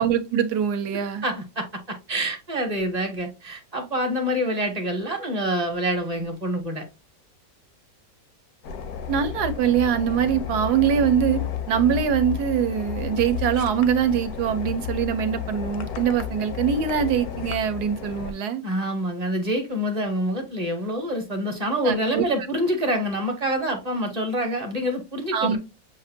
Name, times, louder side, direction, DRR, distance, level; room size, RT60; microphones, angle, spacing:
voice 1, 0.0-1.2 9.1-11.4 11.7-18.6 21.8-22.2 25.3-25.6, right 8 dB, 70° right, 1.1 m, -23 dB
voice 2, 1.2-6.8 18.6-25.6, equal, 35° right, 0.7 m, -26 dB
sound 1, 8.6-18.3, left 9 dB, 70° left, 1.0 m, -32 dB
7.3 x 2.5 x 2.6 m
omnidirectional pair, 1.9 m